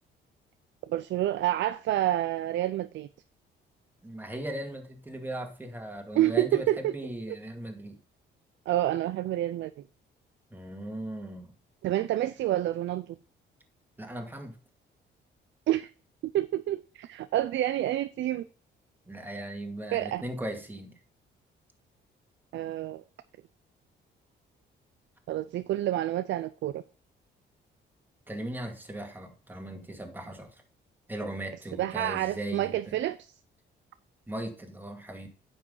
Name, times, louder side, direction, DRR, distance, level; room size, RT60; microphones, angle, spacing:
voice 1, 0.9-3.1 6.1-6.9 8.7-9.7 11.8-13.2 15.7-15.9 16.3-18.4 19.9-20.2 22.5-23.0 25.3-26.8 31.8-33.3, right 13 dB, 70° right, 0.5 m, -28 dB
voice 2, 4.0-8.0 10.5-11.5 14.0-14.5 19.1-21.0 28.3-30.6 31.1-33.0 34.3-35.3, right 1 dB, 10° right, 2.2 m, -38 dB
9.5 x 6.1 x 3.9 m
cardioid pair, 90°, 20 cm